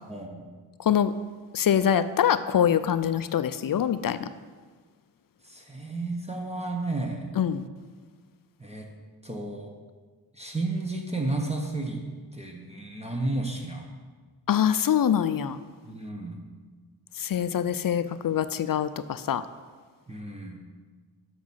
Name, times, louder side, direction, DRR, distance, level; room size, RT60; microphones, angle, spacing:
voice 1, 0.1-0.5 5.4-7.3 8.6-8.9 9.2-9.7 10.3-12.0 12.3-13.9 15.8-16.4 20.1-20.6, right 2 dB, 15° right, 1 dB, 1.3 m, -32 dB
voice 2, 1.5-4.3 7.4-7.7 14.5-15.6 17.2-19.4, left 9 dB, 50° left, 13 dB, 0.5 m, -24 dB
7.3 x 6.2 x 5.6 m, 1.5 s
cardioid pair, 50°, 44 cm